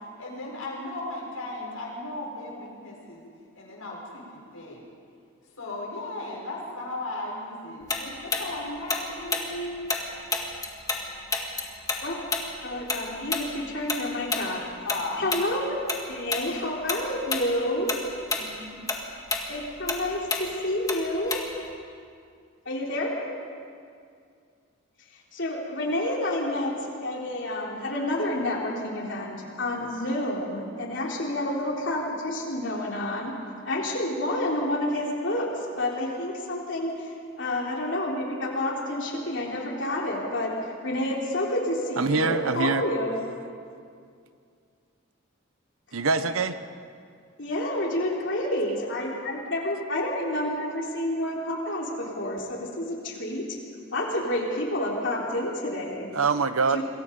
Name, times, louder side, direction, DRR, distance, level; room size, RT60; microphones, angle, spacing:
voice 1, 0.2-3.2 3.5-4.8 5.6-9.8 14.8-15.3 18.4-18.8, left 2 dB, 85° left, -2 dB, 6.6 m, -36 dB
Tick-tock, 7.9-11.0 11.3-16.0 16.3-16.5 16.9-17.5 17.8-21.7, left 3 dB, 15° left, 1.9 m, -30 dB
voice 2, 12.6-14.6 15.2-15.7 16.1-18.0 19.5-21.4 22.7-23.2 25.3-33.3 33.7-40.5 40.8-43.2 47.4-53.5 53.9-56.1 56.7-56.8, left 1 dB, 60° left, -2 dB, 3.6 m, -29 dB
voice 3, 42.0-42.8 45.9-46.6 56.1-56.8, right 4 dB, 80° right, 11 dB, 1.0 m, -24 dB
27.0 x 22.5 x 5.4 m, 2.3 s
head